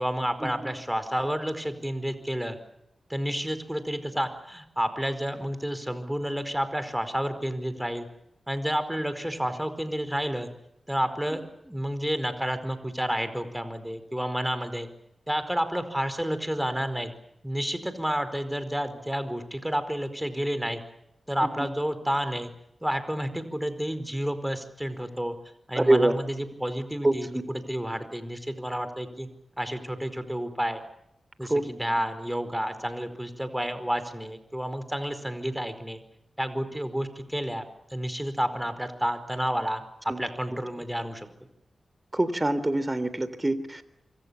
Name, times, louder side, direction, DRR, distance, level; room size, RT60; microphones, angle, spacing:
voice 1, 0.0-2.6 3.1-8.1 8.5-10.5 10.9-14.9 15.3-17.1 17.4-20.8 21.3-22.5 22.8-25.3 25.7-29.3 29.6-30.8 31.4-36.0 36.4-41.3, equal, 5° right, 10 dB, 4.8 m, -30 dB
voice 2, 25.7-26.2 27.0-27.4 31.5-31.6 40.1-40.2 42.1-43.8, right 1 dB, 20° right, 14 dB, 3.5 m, -24 dB
26.5 x 24.5 x 7.2 m, 0.79 s
cardioid pair, 55°, 0 cm